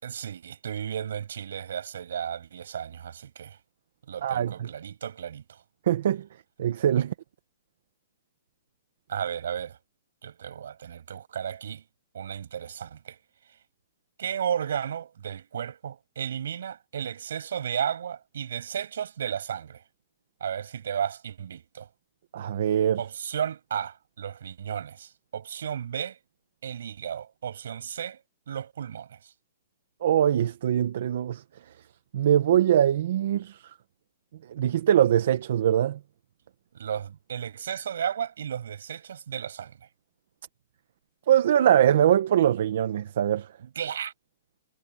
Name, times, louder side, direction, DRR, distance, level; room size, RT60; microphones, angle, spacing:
voice 1, 0.0-3.6 4.1-5.6 7.0-7.1 9.1-9.8 10.2-11.8 12.1-13.2 14.2-19.8 20.4-21.9 23.0-26.2 26.6-28.2 28.5-29.3 36.7-39.8 43.6-44.1, right 8 dB, 65° right, 6.7 m, -34 dB
voice 2, 5.9-6.2 6.6-7.1 22.3-23.0 30.0-31.4 32.1-33.6 34.6-36.0 41.3-43.5, right 10 dB, 50° right, 1.0 m, -22 dB
hypercardioid pair, 175°, 0 cm